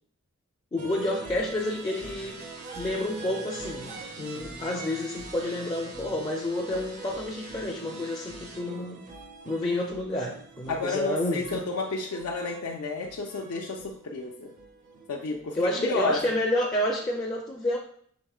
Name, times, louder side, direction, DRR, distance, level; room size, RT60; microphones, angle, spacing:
voice 1, 0.7-2.4 2.7-9.0 9.5-11.6 15.5-17.8, left 1 dB, 20° left, -2 dB, 0.4 m, -29 dB
sound 1, 0.8-16.6, right 3 dB, 35° right, 0.5 m, -44 dB
sound 2, 1.6-8.6, right 2 dB, 80° right, 1.0 m, -47 dB
voice 2, 10.7-14.5 15.1-16.2, left 3 dB, 85° left, 0 dB, 0.5 m, -31 dB
6.0 x 3.6 x 2.3 m, 0.62 s
head